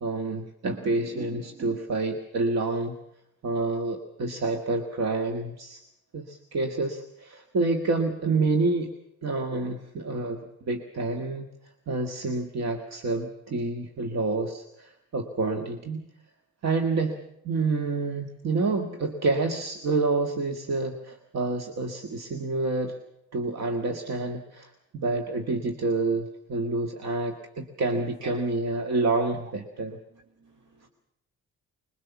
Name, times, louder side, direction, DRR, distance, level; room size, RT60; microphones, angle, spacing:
voice 1, 0.0-3.0 3.4-5.8 6.1-8.9 9.2-11.5 11.9-16.1 16.6-17.2 17.4-23.0 23.3-30.0, right 3 dB, 60° right, 5 dB, 1.9 m, -28 dB
voice 2, 30.1-30.9, right 4 dB, 80° right, 3 dB, 4.2 m, -47 dB
21.5 x 21.5 x 7.2 m, 0.77 s
cardioid pair, 90°, 30 cm